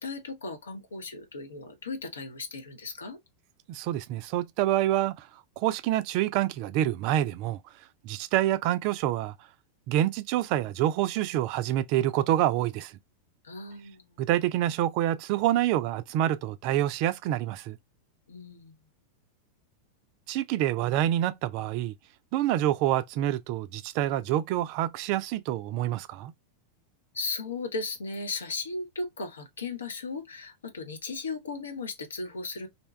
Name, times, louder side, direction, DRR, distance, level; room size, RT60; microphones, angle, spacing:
voice 1, 0.0-3.2 13.4-14.2 18.3-18.8 27.1-32.7, left 3 dB, 70° left, 0.7 m, -36 dB
voice 2, 3.7-5.3 5.6-7.6 8.0-9.3 9.9-12.9 14.2-17.8 20.3-21.9 22.3-26.3, right 13 dB, 45° right, 0.3 m, -27 dB
2.7 x 2.2 x 3.1 m
figure-of-eight pair, 90°, 0 cm